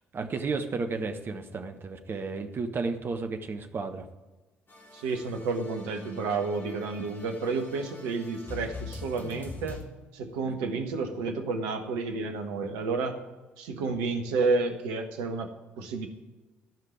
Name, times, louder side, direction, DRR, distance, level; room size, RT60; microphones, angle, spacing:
voice 1, 0.1-4.1, right 4 dB, 35° right, 7 dB, 1.3 m, -33 dB
sound 1, 4.7-9.8, left 3 dB, 35° left, 2.9 m, -44 dB
voice 2, 4.9-9.8 10.1-13.2 13.6-15.5 15.8-16.1, right 4 dB, 65° right, 5 dB, 1.3 m, -30 dB
14.0 x 5.7 x 9.1 m, 1.2 s
figure-of-eight pair, 45°, 6 cm